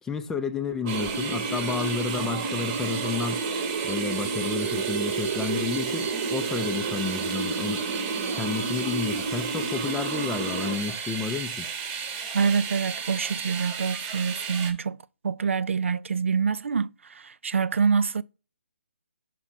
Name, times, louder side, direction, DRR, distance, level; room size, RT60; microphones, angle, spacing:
voice 1, 0.0-3.5 3.8-7.8 8.3-11.7, left 5 dB, 5° left, 0.4 m, -31 dB
sound 1, 0.8-10.8, right 4 dB, 45° right, 1.0 m, -31 dB
sound 2, 0.9-14.7, right 6 dB, 20° right, 1.0 m, -34 dB
voice 2, 12.3-15.0 15.2-18.2, right 6 dB, 70° right, 0.4 m, -26 dB
5.9 x 4.3 x 4.0 m
figure-of-eight pair, 145°, 7 cm